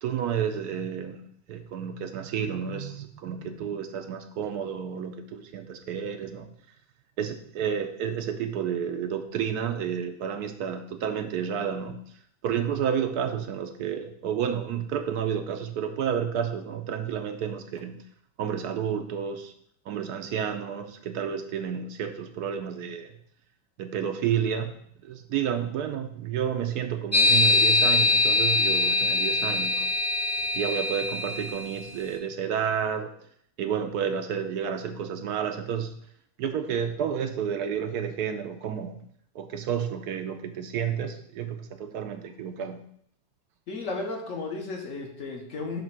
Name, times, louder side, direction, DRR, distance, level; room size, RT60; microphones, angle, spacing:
voice 1, 0.0-1.2 1.5-6.5 7.2-12.0 12.4-18.0 18.4-19.5 19.9-23.1 23.8-24.7 25.0-29.9 30.5-33.1 33.6-36.0 36.4-39.0 39.3-42.8, right 8 dB, 75° right, 7 dB, 1.1 m, -30 dB
sound 1, 27.1-31.8, left 2 dB, 15° left, 0.6 m, -23 dB
voice 2, 43.7-45.8, left 3 dB, 55° left, 1 dB, 1.3 m, -34 dB
7.3 x 2.9 x 5.9 m, 0.65 s
omnidirectional pair, 1.8 m